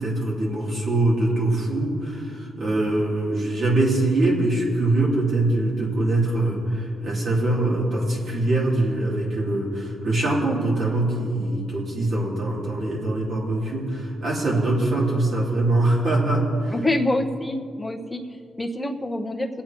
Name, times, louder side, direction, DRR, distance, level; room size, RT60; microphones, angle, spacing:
voice 1, 0.0-16.8, right 2 dB, 60° right, -4 dB, 3.0 m, -23 dB
voice 2, 16.7-18.2 18.6-19.5, left 1 dB, 15° left, 5 dB, 0.9 m, -26 dB
24.0 x 8.5 x 3.0 m, 2.5 s
cardioid pair, 90°, 0 cm